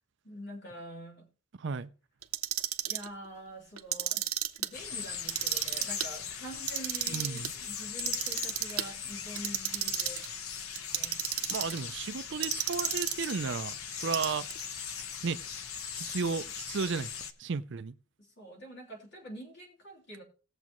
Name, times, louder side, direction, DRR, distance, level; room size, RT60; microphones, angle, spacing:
voice 1, 0.2-1.3 2.9-4.3 4.6-10.2 10.9-11.5 18.2-20.2, equal, 50° left, 3.3 m, -46 dB
voice 2, 1.6-1.9 7.1-7.5 11.5-14.5 15.2-15.4 15.9-17.1 17.4-17.9, right 5 dB, 55° right, 0.5 m, -34 dB
Clock, 2.2-3.1 3.8-4.7 5.1-6.1 6.5-7.5 8.0-8.9 9.3-10.3 10.7-11.8 12.4-13.3 14.0-14.6, right 13 dB, 85° right, 0.8 m, -32 dB
sound 1, 4.7-17.3, left 7 dB, 80° left, 0.9 m, -39 dB
18.5 x 7.2 x 3.0 m
head